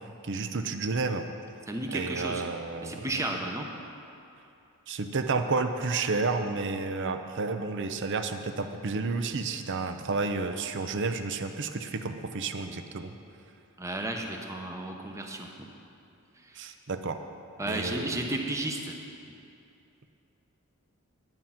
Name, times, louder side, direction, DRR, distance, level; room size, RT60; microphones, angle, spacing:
voice 1, 0.2-1.3 1.9-3.0 4.9-13.2 16.5-17.2 17.7-18.2, right 4 dB, 55° right, 7 dB, 0.6 m, -31 dB
voice 2, 1.7-2.5 2.8-3.7 13.8-15.7 16.4-16.6 17.6-19.0, right 1 dB, 15° right, 2 dB, 0.9 m, -33 dB
11.0 x 9.2 x 5.8 m, 2.7 s
head